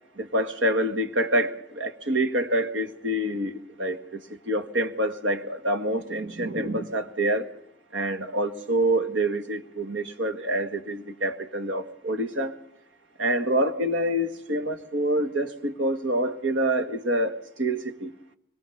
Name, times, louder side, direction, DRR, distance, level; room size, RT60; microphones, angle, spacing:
voice 1, 0.2-4.2 4.5-7.5 7.9-12.6 13.2-18.1, right 1 dB, 80° right, 1.9 m, -26 dB
25.0 x 22.0 x 7.1 m
head